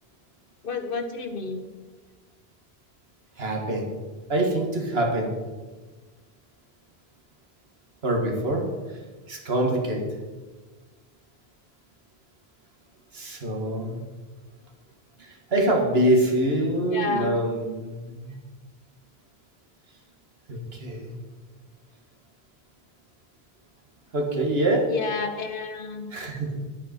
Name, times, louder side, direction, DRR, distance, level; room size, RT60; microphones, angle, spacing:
voice 1, 0.6-1.7 16.9-17.4 24.9-26.1, left 4 dB, 60° left, 7 dB, 1.2 m, -30 dB
voice 2, 3.4-3.9 4.3-5.3 8.0-8.7 9.3-10.0 13.1-14.0 15.2-18.4 20.5-21.2 24.1-24.9 26.1-26.6, right 1 dB, 75° right, 1 dB, 1.9 m, -25 dB
10.5 x 8.6 x 4.4 m, 1.3 s
omnidirectional pair, 1.0 m